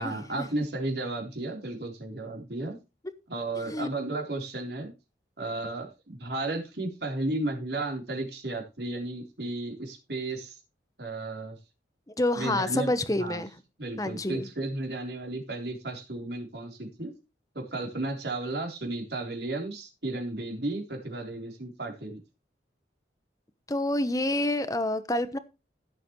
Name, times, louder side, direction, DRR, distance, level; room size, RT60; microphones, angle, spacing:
voice 1, 0.0-2.8 3.3-4.9 5.4-10.6 11.0-11.6 12.4-12.9 13.2-13.4 13.8-17.1 17.5-22.2, right 2 dB, 65° right, 3.7 m, -33 dB
voice 2, 12.1-13.5 14.0-14.5 23.7-25.4, left 1 dB, 20° left, 0.9 m, -28 dB
16.0 x 7.7 x 3.1 m
head